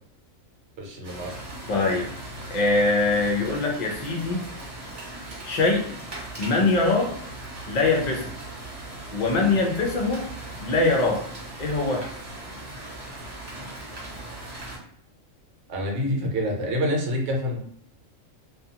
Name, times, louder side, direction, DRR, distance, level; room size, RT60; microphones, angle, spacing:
voice 1, 0.8-1.3 15.7-17.6, equal, 65° right, -1 dB, 1.0 m, -27 dB
sound 1, 1.0-14.8, right 2 dB, 20° right, 0.8 m, -39 dB
voice 2, 1.7-2.1 2.5-4.5 5.4-5.9 6.4-7.2 7.7-8.3 9.1-10.3 10.6-11.2 11.6-12.1, left 3 dB, 50° left, 1 dB, 0.5 m, -23 dB
2.4 x 2.3 x 2.8 m, 0.64 s
omnidirectional pair, 1.3 m